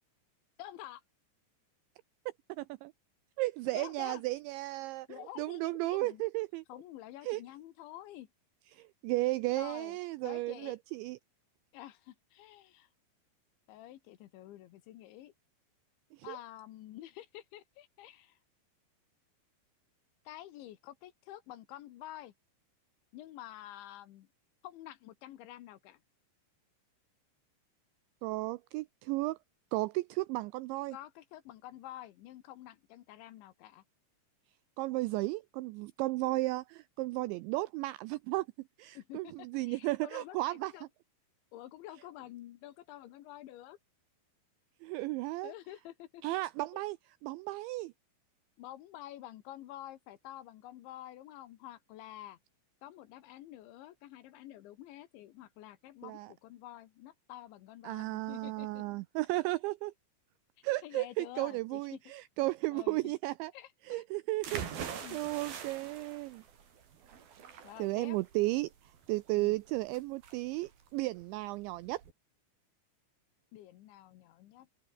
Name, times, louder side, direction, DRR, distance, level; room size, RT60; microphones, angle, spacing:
voice 1, 0.6-1.0 3.7-4.2 5.1-6.2 6.7-8.3 9.6-10.0 10.2-10.8 11.7-12.9 13.7-15.3 16.2-18.4 20.3-22.3 23.1-24.3 24.6-26.0 30.9-33.8 39.0-40.9 41.5-43.8 45.4-46.2 46.7-46.8 48.6-52.4 52.8-58.9 60.8-62.0 62.7-63.1 63.5-64.0 65.0-65.2 67.6-68.2 69.4-69.6 73.5-74.7, left 13 dB, 70° left, 3.4 m, -49 dB
voice 2, 2.6-2.9 3.4-6.6 7.2-7.4 8.7-11.2 16.1-16.4 28.2-29.4 29.7-31.0 34.8-38.5 38.8-40.7 44.8-45.5 46.2-47.0 47.2-47.9 56.0-56.3 57.8-59.9 60.6-63.5 63.9-66.4 67.5-72.0, right 20 dB, 85° right, 2.6 m, -34 dB
sound 1, 64.4-72.1, right 7 dB, 50° right, 4.8 m, -44 dB
open air
omnidirectional pair, 5.9 m